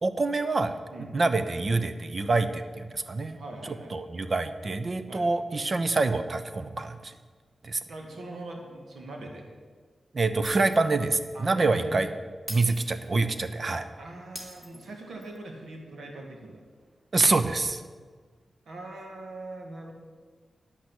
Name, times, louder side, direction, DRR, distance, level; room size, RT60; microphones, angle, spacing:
voice 1, 0.0-0.8 1.1-3.4 3.6-7.1 7.6-7.8 10.1-12.1 12.5-13.9 17.1-17.8, right 3 dB, 50° right, 10 dB, 0.8 m, -26 dB
voice 2, 3.4-3.9 5.1-5.3 7.9-9.5 11.3-12.0 14.0-16.6 18.7-19.9, right 2 dB, 80° right, 1 dB, 1.9 m, -41 dB
Shatter, 10.5-11.0 11.3-11.5 12.5-13.5 14.4-15.4, equal, 10° right, 2.6 m, -43 dB
10.0 x 6.0 x 8.2 m, 1.5 s
cardioid pair, 55°, 0 cm